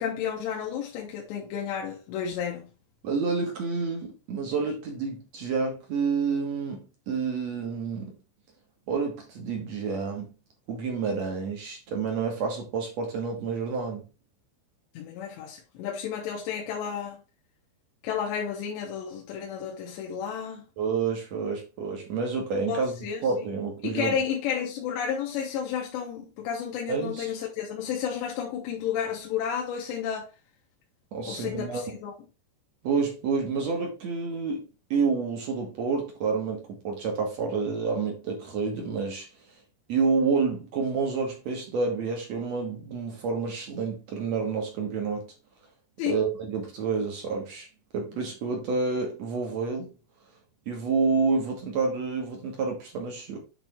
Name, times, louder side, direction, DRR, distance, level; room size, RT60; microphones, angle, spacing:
voice 1, 0.0-2.7 14.9-17.2 18.0-20.7 22.7-23.2 23.8-30.3 31.2-32.1 46.0-46.2, left 8 dB, 80° left, 3.3 m, -32 dB
voice 2, 3.0-8.1 8.9-10.3 10.7-14.0 20.8-24.2 26.9-27.3 31.1-32.0 32.8-39.3 39.9-45.3 46.1-47.7 47.9-49.9 50.7-53.4, right 4 dB, 60° right, 1.8 m, -29 dB
8.9 x 3.4 x 4.5 m
omnidirectional pair, 5.0 m